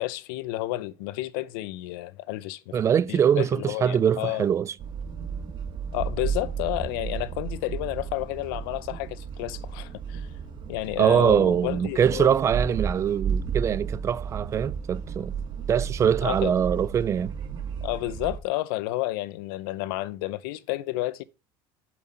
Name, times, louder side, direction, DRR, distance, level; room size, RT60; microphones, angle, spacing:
voice 1, 0.0-2.8 3.1-4.5 5.9-10.3 10.7-12.3 16.2-16.5 17.8-21.2, left 17 dB, 85° left, 0.6 m, -31 dB
voice 2, 2.7-4.7 11.0-15.3 15.7-17.3, right 8 dB, 25° right, 0.4 m, -23 dB
sound 1, 4.8-18.4, right 6 dB, 40° right, 1.4 m, -33 dB
7.5 x 6.1 x 4.3 m
cardioid pair, 140°, 11 cm